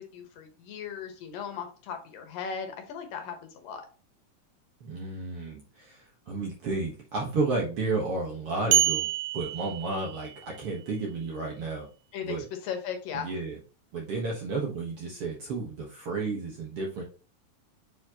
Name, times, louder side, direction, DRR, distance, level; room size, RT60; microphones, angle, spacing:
voice 1, 0.0-3.8 12.1-13.3, left 7 dB, 75° left, 5 dB, 2.9 m, -37 dB
voice 2, 4.8-11.9 12.2-12.5 13.1-13.6 13.9-17.0, right 3 dB, 55° right, -1 dB, 1.8 m, -32 dB
sound 1, 8.7-10.6, right 12 dB, 90° right, 2.4 m, -27 dB
7.4 x 4.3 x 2.9 m, 0.36 s
omnidirectional pair, 4.0 m